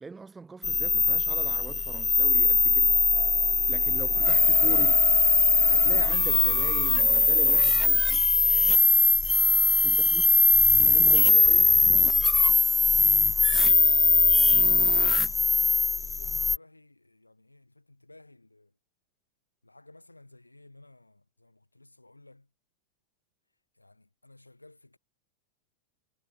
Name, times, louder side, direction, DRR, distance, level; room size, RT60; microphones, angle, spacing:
voice 1, 0.0-2.9 3.7-5.0 5.7-8.4 9.8-10.3 10.8-11.7, right 4 dB, 15° right, 1.4 m, -41 dB
sound 1, 0.6-16.6, left 3 dB, 10° left, 0.4 m, -21 dB
voice 2, 2.4-2.9 3.3-4.5 9.4-10.0 10.7-14.8 15.6-18.7 19.6-22.5 23.7-25.0, left 2 dB, 85° left, 4.8 m, -55 dB
figure-of-eight pair, 90°, 0 cm